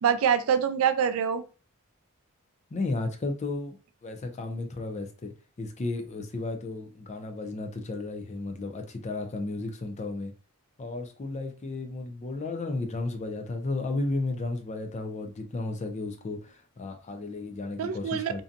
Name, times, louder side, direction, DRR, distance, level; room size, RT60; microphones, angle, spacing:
voice 1, 0.0-1.4 17.8-18.4, right 8 dB, 70° right, 0.3 m, -25 dB
voice 2, 2.7-3.8 4.0-5.3 5.6-10.3 10.8-18.4, left 2 dB, 30° left, 0.4 m, -33 dB
2.6 x 2.2 x 2.5 m
head